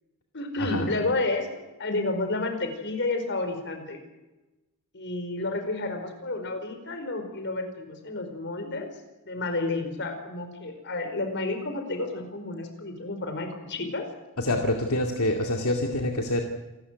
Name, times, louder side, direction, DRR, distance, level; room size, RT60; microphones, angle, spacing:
voice 1, 0.3-4.0 4.9-8.9 9.3-14.0, left 2 dB, 55° left, 6 dB, 4.8 m, -31 dB
voice 2, 14.4-16.4, left 1 dB, 75° left, 2 dB, 2.4 m, -26 dB
28.0 x 14.0 x 9.6 m, 1.1 s
head